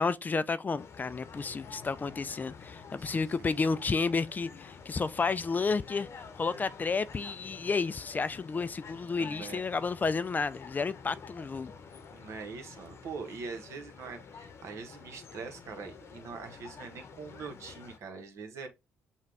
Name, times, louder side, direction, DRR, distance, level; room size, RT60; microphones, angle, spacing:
voice 1, 0.0-11.7, left 4 dB, 35° left, 0.4 m, -31 dB
sound 1, 0.8-18.0, left 5 dB, 55° left, 0.9 m, -49 dB
voice 2, 9.2-9.6 12.1-18.7, right 5 dB, 65° right, 1.1 m, -43 dB
5.7 x 2.3 x 3.3 m
hypercardioid pair, 55°, 5 cm